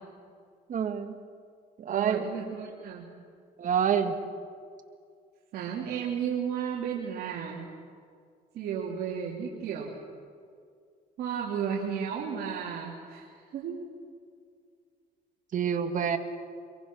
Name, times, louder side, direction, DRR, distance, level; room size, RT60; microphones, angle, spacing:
voice 1, 0.7-1.1 1.8-2.3 3.6-4.2 15.5-16.2, right 8 dB, 50° right, 7 dB, 1.9 m, -27 dB
voice 2, 1.9-3.1 5.5-7.7 8.5-9.9 11.2-13.9, right 7 dB, 70° right, -4 dB, 3.1 m, -33 dB
26.5 x 22.0 x 6.3 m, 2.2 s
cardioid pair, 110°, 17 cm